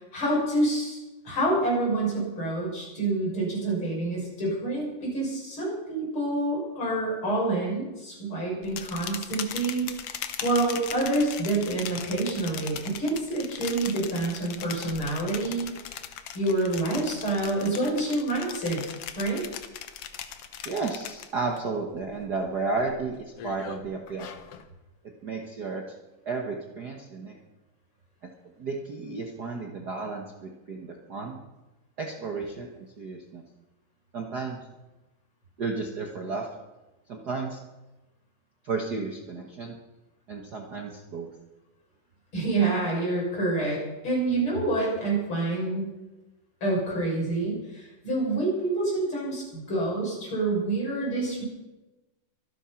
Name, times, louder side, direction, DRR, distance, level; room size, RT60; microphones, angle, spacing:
voice 1, 0.1-9.9 10.4-15.7 16.3-18.8 19.2-19.4 42.3-45.9 46.6-51.4, right 2 dB, 35° left, -3 dB, 7.1 m, -27 dB
sound 1, 8.6-21.6 21.9-22.4 22.8-24.7, left 9 dB, 70° left, 1.4 m, -39 dB
voice 2, 20.6-24.3 25.2-25.8 26.2-27.4 28.6-31.4 32.0-33.4 34.1-34.6 35.6-36.5 37.1-37.6 38.6-39.7 40.3-41.3, right 4 dB, 70° right, 1 dB, 0.9 m, -33 dB
24.0 x 9.1 x 5.9 m, 1.1 s
omnidirectional pair, 3.9 m